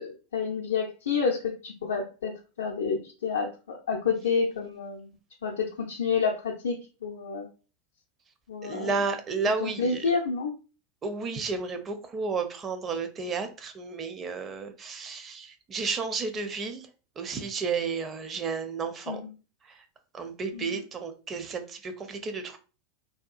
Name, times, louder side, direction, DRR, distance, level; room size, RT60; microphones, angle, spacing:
voice 1, 0.0-5.1 5.4-6.8 7.0-7.5 8.5-8.9 9.6-10.5 19.1-19.3 20.5-20.8, left 5 dB, 70° left, -1 dB, 0.4 m, -29 dB
voice 2, 8.6-10.0 11.0-16.9 17.2-19.2 19.6-19.8 20.1-22.6, right 4 dB, 25° right, 7 dB, 0.5 m, -32 dB
2.7 x 2.3 x 2.3 m, 0.33 s
figure-of-eight pair, 85°, 0 cm